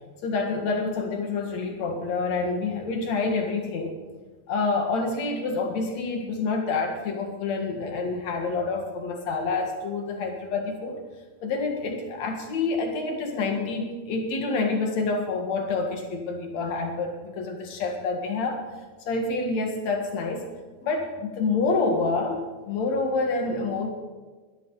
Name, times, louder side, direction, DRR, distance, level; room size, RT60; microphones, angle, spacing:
voice 1, 0.2-3.9 4.5-11.0 11.4-18.6 19.1-20.4 20.8-23.9, left 3 dB, 65° left, 3 dB, 3.1 m, -27 dB
21.5 x 12.5 x 4.0 m, 1.4 s
omnidirectional pair, 3.4 m